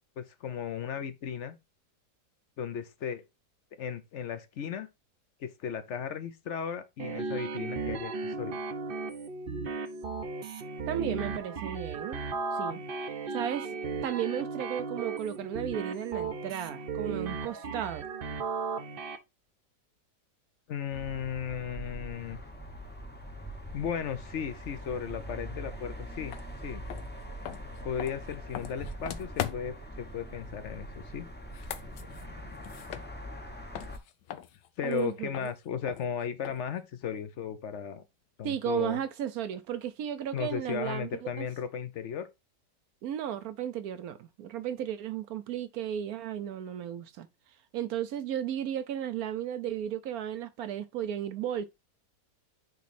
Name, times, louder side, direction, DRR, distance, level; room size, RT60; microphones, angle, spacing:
voice 1, 0.2-1.6 2.6-3.2 3.8-4.9 5.4-8.6 20.7-22.4 23.7-26.8 27.8-31.3 34.8-38.0 38.4-39.0 40.3-42.3, left 7 dB, 60° left, 0.8 m, -35 dB
sound 1, 7.0-19.2, right 4 dB, 50° right, 0.6 m, -36 dB
voice 2, 10.9-12.2 12.5-12.8 13.3-13.7 14.0-18.1 34.8-35.4 38.4-41.1 41.4-41.5 43.0-47.3 47.7-51.6, right 10 dB, 65° right, 1.0 m, -34 dB
sound 2, 20.9-34.0, equal, 10° left, 0.6 m, -43 dB
sound 3, 26.3-26.4 26.9-29.9 31.4-33.5 33.7-36.8, left 11 dB, 85° left, 1.3 m, -41 dB
9.3 x 3.1 x 4.1 m
omnidirectional pair, 1.8 m